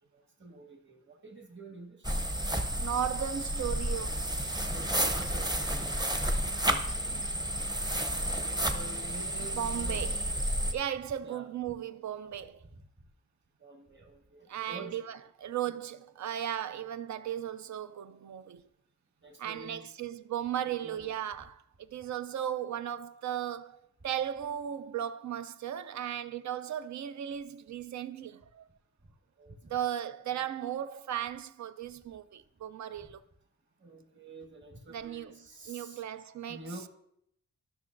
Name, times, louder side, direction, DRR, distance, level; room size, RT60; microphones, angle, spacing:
voice 1, 0.1-2.1 4.7-6.0 8.2-10.0 11.2-11.5 13.6-15.0 19.2-19.9 20.7-21.1 29.4-29.7 30.3-30.4 33.8-36.9, right 2 dB, 40° right, 1.4 m, -48 dB
sound 1, 2.0-10.7, right 1 dB, 15° right, 0.7 m, -31 dB
voice 2, 2.8-4.3 5.0-5.1 6.8-7.2 9.5-10.2 10.7-12.6 14.5-18.7 19.4-28.7 29.7-33.2 34.9-35.4 35.7-36.7, right 10 dB, 75° right, 0.5 m, -36 dB
13.5 x 6.0 x 2.5 m
wide cardioid pair, 100°, 29 cm